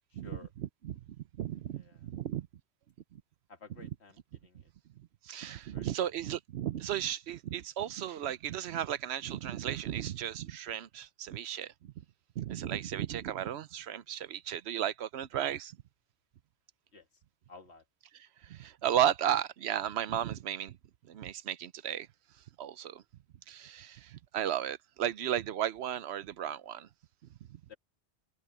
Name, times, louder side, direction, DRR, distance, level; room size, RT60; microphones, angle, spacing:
voice 1, 0.1-0.5 1.7-2.1 3.5-4.7 5.7-6.1 16.9-17.2 17.5-17.9 27.7-27.8, left 4 dB, 75° left, 2.2 m, -54 dB
voice 2, 1.4-2.5 3.1-3.2 5.2-11.9 12.4-15.8 18.4-20.8 21.1-22.1 22.6-23.0 23.5-26.9, right 10 dB, 75° right, 0.9 m, -34 dB
omnidirectional pair, 1.1 m